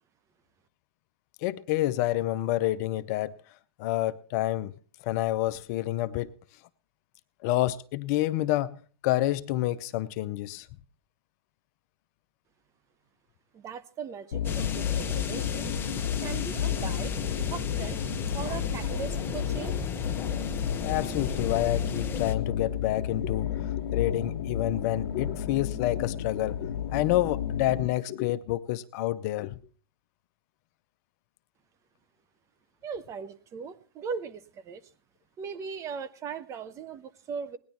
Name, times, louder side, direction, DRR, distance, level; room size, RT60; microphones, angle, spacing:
voice 1, 1.4-3.4 3.8-4.7 5.0-6.3 7.4-10.7 20.8-29.5, left 15 dB, 40° left, 0.7 m, -28 dB
voice 2, 13.5-15.6 16.0-17.1 17.5-18.0 18.3-19.8 32.8-34.8 35.4-37.6, right 6 dB, 25° right, 0.9 m, -38 dB
sound 1, 14.3-27.9, left 9 dB, 65° left, 1.4 m, -32 dB
sound 2, 14.4-22.3, left 5 dB, 15° left, 1.0 m, -35 dB
18.5 x 10.5 x 4.3 m
hypercardioid pair, 130°, 13 cm